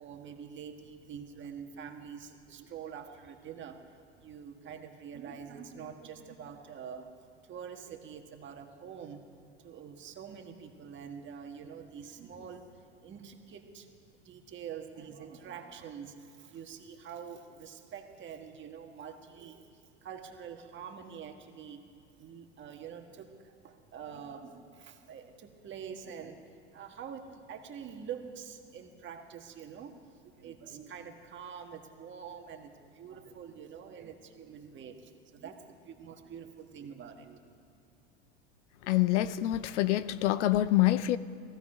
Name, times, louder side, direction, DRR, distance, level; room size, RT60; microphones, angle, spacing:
voice 1, 0.0-9.3 9.6-13.9 14.2-21.8 22.2-37.4, right 7 dB, 35° right, 1.5 m, -46 dB
voice 2, 38.8-41.2, left 15 dB, 80° left, 0.6 m, -26 dB
18.5 x 15.5 x 4.9 m
supercardioid pair, 115°, 35 cm